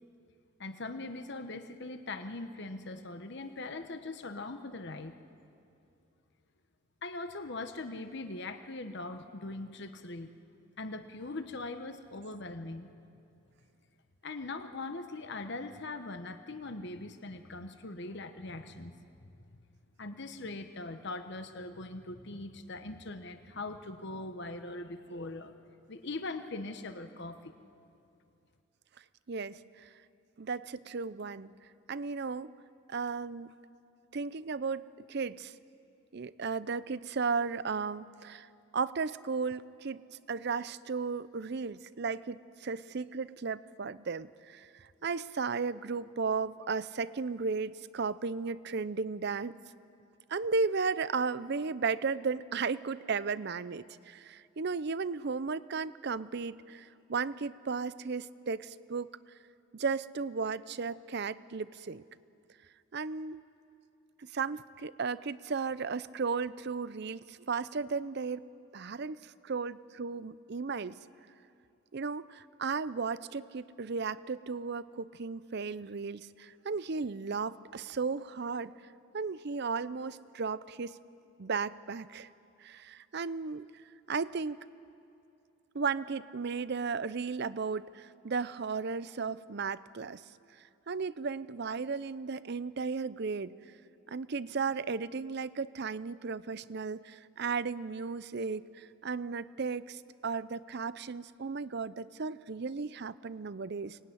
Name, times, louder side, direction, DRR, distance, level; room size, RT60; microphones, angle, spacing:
voice 1, 0.6-5.1 7.0-10.3 10.8-12.9 14.2-19.0 19.2-19.3 20.0-25.5 25.9-27.5, left 2 dB, 55° left, 8 dB, 1.0 m, -41 dB
voice 2, 29.3-29.9 30.4-31.5 31.9-32.5 32.9-33.5 34.1-35.5 36.1-38.5 38.7-40.0 40.3-49.6 50.3-59.1 59.7-62.0 62.9-63.4 64.2-68.5 68.7-71.0 71.9-78.7 79.1-81.0 81.4-82.3 82.6-83.7 84.1-84.6 85.7-90.2 90.9-93.5 94.1-104.0, right 5 dB, 50° right, 17 dB, 0.5 m, -35 dB
24.0 x 19.5 x 9.8 m, 2.6 s
head